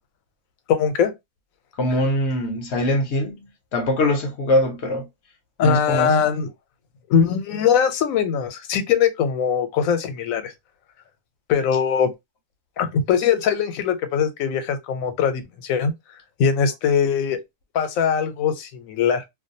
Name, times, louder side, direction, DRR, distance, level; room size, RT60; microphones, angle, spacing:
voice 1, 0.7-1.1 5.6-6.5 7.1-10.5 11.5-12.1 12.8-15.9 16.4-17.4 17.7-19.2, left 7 dB, 90° left, 1.0 m, -21 dB
voice 2, 1.8-5.1 5.6-6.1, left 1 dB, 65° left, 0.8 m, -22 dB
2.4 x 2.2 x 2.6 m
omnidirectional pair, 1.4 m